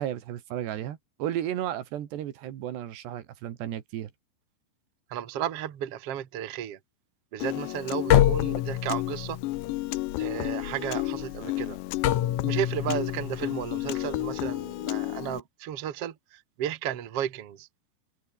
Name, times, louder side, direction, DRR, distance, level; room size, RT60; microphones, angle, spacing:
voice 1, 0.0-4.1, right 11 dB, 75° right, 3.9 m, -33 dB
voice 2, 5.1-6.8 7.3-9.4 10.2-11.8 12.4-17.7, right 10 dB, 50° right, 2.0 m, -33 dB
Piano, 7.4-15.4, left 18 dB, 85° left, 3.1 m, -33 dB
sound 1, 8.1-14.4, left 12 dB, 60° left, 2.2 m, -27 dB
omnidirectional pair, 5.0 m